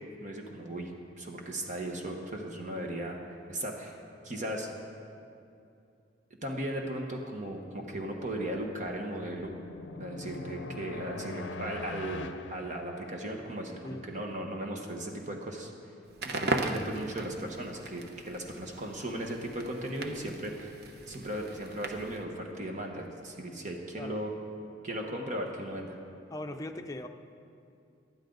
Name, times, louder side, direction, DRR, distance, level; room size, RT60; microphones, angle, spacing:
voice 1, 0.2-4.0 4.2-4.7 6.4-9.5 10.0-15.7 16.3-20.7 21.1-24.3 24.8-26.0, right 1 dB, 45° right, 1 dB, 1.3 m, -37 dB
sound 1, 8.6-13.5, left 3 dB, 85° left, 0.6 m, -43 dB
Crackle, 16.1-22.2, right 2 dB, 60° right, 0.9 m, -37 dB
voice 2, 26.3-27.1, left 1 dB, 20° left, 4 dB, 0.6 m, -39 dB
19.0 x 12.0 x 4.0 m, 2.6 s
head